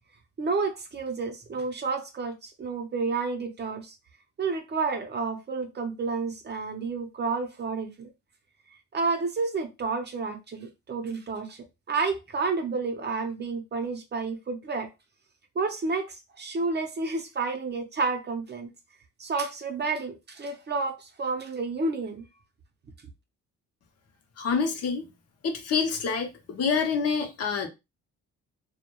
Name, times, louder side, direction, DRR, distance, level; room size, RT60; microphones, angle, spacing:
voice 1, 0.4-4.0 4.4-8.1 8.9-14.9 15.6-18.7 19.2-22.2, right 4 dB, 35° right, 0.6 m, -30 dB
voice 2, 24.4-25.0 25.4-27.7, left 5 dB, 55° left, 0.7 m, -27 dB
2.2 x 2.1 x 2.9 m
cardioid pair, 90°, 30 cm